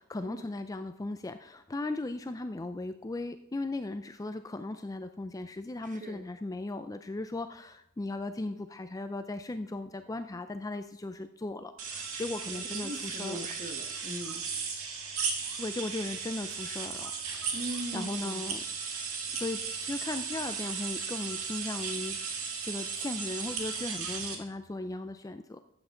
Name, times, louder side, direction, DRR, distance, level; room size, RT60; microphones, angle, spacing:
voice 1, 0.0-13.4 15.6-17.1 17.6-17.7 17.9-18.6 19.3-22.2 22.6-25.6, left 2 dB, 15° left, 9 dB, 0.4 m, -37 dB
voice 2, 5.8-6.2 12.5-14.4 17.5-18.4, equal, 35° right, 5 dB, 1.5 m, -40 dB
sound 1, 11.8-24.4, right 5 dB, 70° right, 1.9 m, -36 dB
13.0 x 8.0 x 3.8 m, 0.85 s
head